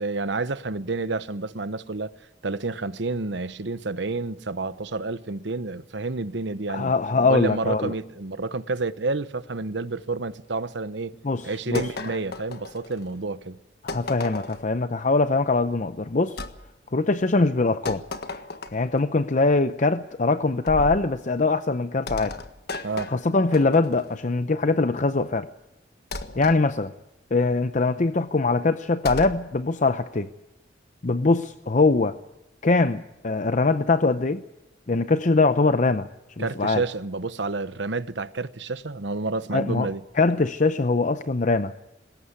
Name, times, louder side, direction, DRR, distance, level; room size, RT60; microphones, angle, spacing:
voice 1, 0.0-2.1 2.4-6.9 7.3-11.1 11.4-13.6 22.8-23.1 36.4-40.0, right 3 dB, 65° right, 1.0 m, -29 dB
voice 2, 6.7-7.9 11.2-11.8 13.8-16.4 16.9-18.0 18.7-22.3 23.1-25.5 26.4-26.9 27.3-30.3 31.0-32.1 32.6-34.4 34.9-36.1 36.4-36.8 39.5-39.9 40.2-41.7, left 3 dB, 40° left, 0.7 m, -22 dB
sound 1, 11.8-13.2 13.9-14.7 16.4-16.6 17.9-19.0 20.7-21.1 22.1-24.2 26.1-26.6 29.1-29.4, left 2 dB, 55° left, 1.6 m, -35 dB
20.5 x 17.5 x 8.4 m
head